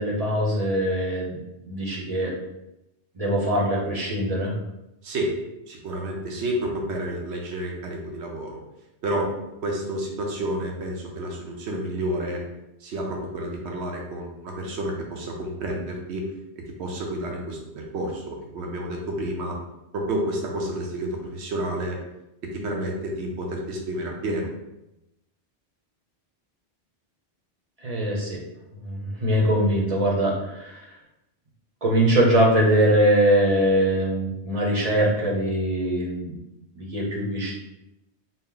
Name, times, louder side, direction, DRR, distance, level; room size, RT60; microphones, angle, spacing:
voice 1, 0.0-1.4 1.6-2.3 3.1-4.5 27.8-28.4 28.8-30.9 31.8-36.4 36.7-37.5, right 1 dB, 40° right, -3 dB, 0.8 m, -22 dB
voice 2, 5.0-5.4 5.7-8.6 9.0-9.3 9.6-12.4 12.8-16.3 16.8-19.6 19.9-22.0 22.4-24.5, right 1 dB, 75° right, 0 dB, 1.0 m, -30 dB
4.2 x 2.1 x 3.8 m, 0.90 s
omnidirectional pair, 1.1 m